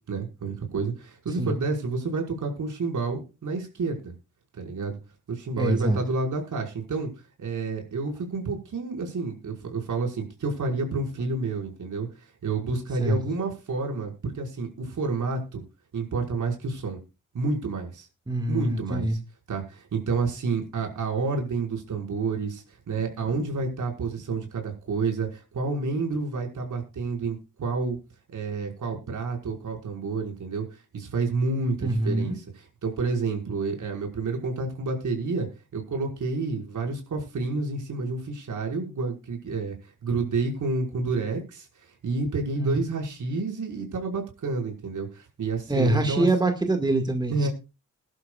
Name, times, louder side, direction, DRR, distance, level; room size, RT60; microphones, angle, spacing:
voice 1, 0.1-4.1 4.6-5.0 5.3-7.1 7.4-15.6 15.9-17.0 17.3-18.1 18.5-19.2 19.5-28.0 28.3-46.3 47.3-47.5, right 4 dB, 70° right, 2 dB, 5.5 m, -29 dB
voice 2, 5.6-6.0 13.0-13.2 18.3-19.2 31.8-32.4 42.6-42.8 45.7-47.5, right 1 dB, 15° right, 4 dB, 2.0 m, -24 dB
21.5 x 12.0 x 2.5 m, 0.30 s
wide cardioid pair, 110°, 31 cm